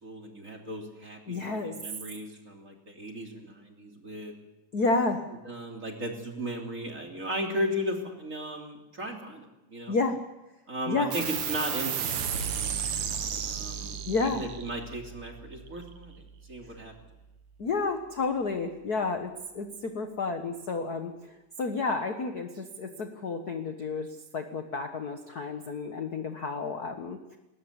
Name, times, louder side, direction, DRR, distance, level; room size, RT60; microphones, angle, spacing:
voice 1, 0.0-4.3 5.4-10.0 10.7-12.7 13.4-16.1 16.5-16.9, equal, 25° right, 1 dB, 3.2 m, -36 dB
voice 2, 1.3-1.8 4.7-5.2 9.9-10.2 10.9-11.1 14.0-14.4 17.6-21.1 21.6-24.1 24.3-27.2, left 3 dB, 50° left, 6 dB, 1.2 m, -30 dB
sound 1, 11.1-18.0, right 8 dB, 70° right, 3.0 m, -35 dB
20.5 x 19.0 x 8.2 m, 0.98 s
omnidirectional pair, 3.5 m